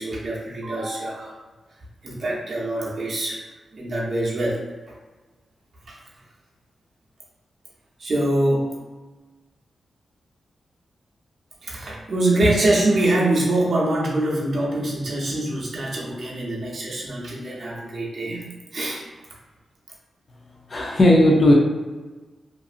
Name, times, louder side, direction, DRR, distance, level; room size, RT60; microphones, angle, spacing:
voice 1, 0.0-1.3 2.0-3.4 3.7-4.9 5.9-6.0 8.0-8.8 11.6-19.1, right 1 dB, 55° right, -4 dB, 0.7 m, -24 dB
voice 2, 20.7-21.5, left 1 dB, 45° left, -2 dB, 0.5 m, -15 dB
2.6 x 2.5 x 2.4 m, 1.2 s
cardioid pair, 85°, 0 cm